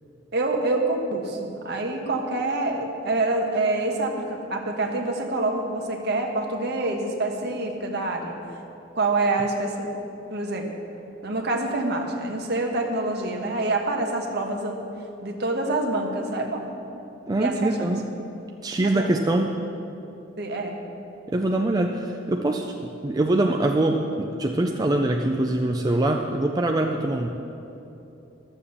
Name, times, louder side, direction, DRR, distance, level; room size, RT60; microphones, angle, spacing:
voice 1, 0.3-8.3 8.9-9.9 10.3-10.7 11.2-14.8 15.2-16.7 17.3-17.9 18.8-19.1 20.4-20.8, right 2 dB, 55° right, 2 dB, 1.3 m, -26 dB
voice 2, 17.3-18.1 18.6-19.5 21.3-27.3, right 1 dB, 20° right, 2 dB, 0.4 m, -23 dB
12.0 x 7.2 x 7.1 m, 2.9 s
head